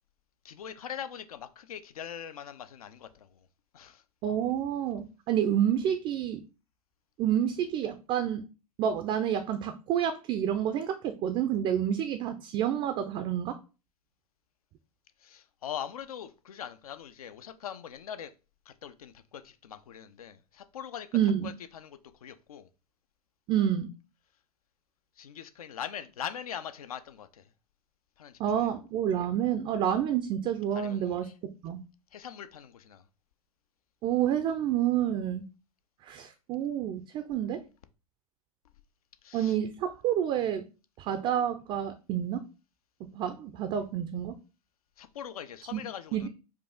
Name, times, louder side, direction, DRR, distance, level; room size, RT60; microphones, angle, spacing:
voice 1, 0.4-3.5 3.7-4.0 15.2-18.3 18.7-21.1 21.4-22.7 25.2-27.5 28.2-28.7 30.7-31.3 32.1-33.1 39.2-39.6 45.0-46.3, left 9 dB, 70° left, 0.5 m, -42 dB
voice 2, 4.2-6.4 7.2-8.5 8.8-13.6 21.1-21.5 23.5-23.9 28.4-31.8 34.0-35.5 36.0-37.6 39.3-40.6 41.0-42.5 43.1-44.4 45.7-45.8 46.1-46.3, right 10 dB, 25° right, 0.4 m, -29 dB
4.7 x 2.4 x 3.5 m
figure-of-eight pair, 95°, 19 cm